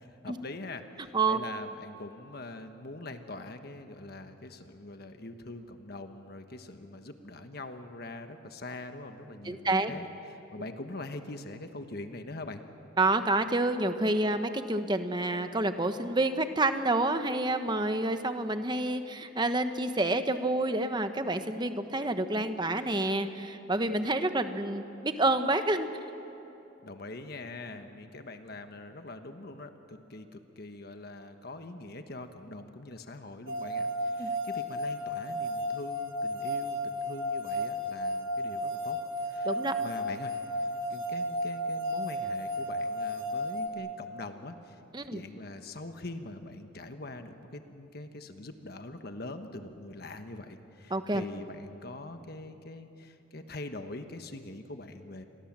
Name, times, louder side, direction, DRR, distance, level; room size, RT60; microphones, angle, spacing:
voice 1, 0.0-12.6 26.8-39.0 39.2-40.4 40.9-55.2, left 2 dB, 55° left, 7 dB, 1.3 m, -43 dB
voice 2, 9.4-9.9 13.0-25.9 34.2-34.3 39.4-39.7 44.9-45.2 50.9-51.2, right 2 dB, 25° right, 8 dB, 1.1 m, -28 dB
sound 1, 33.5-43.7, equal, 90° right, 3.0 m, -33 dB
29.5 x 22.5 x 7.5 m, 2.9 s
head